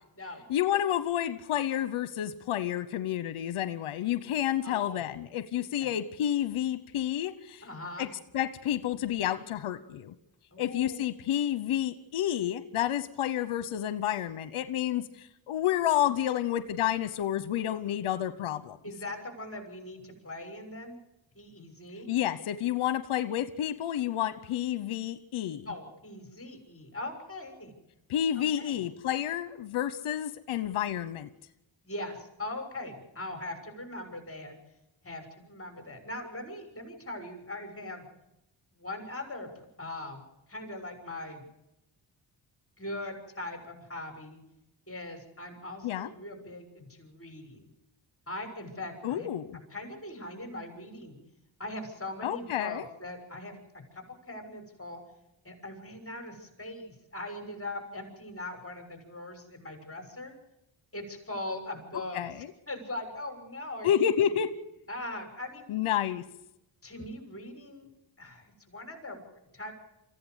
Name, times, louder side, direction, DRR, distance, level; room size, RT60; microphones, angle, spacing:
voice 1, 0.5-7.7 8.0-8.1 8.3-10.1 10.6-18.8 22.1-25.7 28.1-31.3 45.8-46.1 49.0-49.6 52.2-52.9 62.1-62.5 63.8-64.5 65.7-66.2, left 11 dB, 75° left, 13 dB, 1.0 m, -30 dB
voice 2, 4.6-5.1 5.6-5.9 7.6-8.1 10.5-11.0 18.8-21.0 21.3-22.1 25.7-27.7 28.6-28.8 31.8-34.5 35.0-38.1 38.7-39.5 39.8-40.2 40.5-41.4 42.8-44.4 44.9-47.7 48.3-49.3 49.5-51.2 51.6-55.0 55.4-60.3 60.9-62.2 62.7-64.4 64.9-65.7 66.8-67.9 68.2-69.2 69.5-69.7, left 1 dB, 25° left, 5 dB, 6.6 m, -40 dB
24.0 x 15.5 x 8.1 m, 0.89 s
supercardioid pair, 55°, 50 cm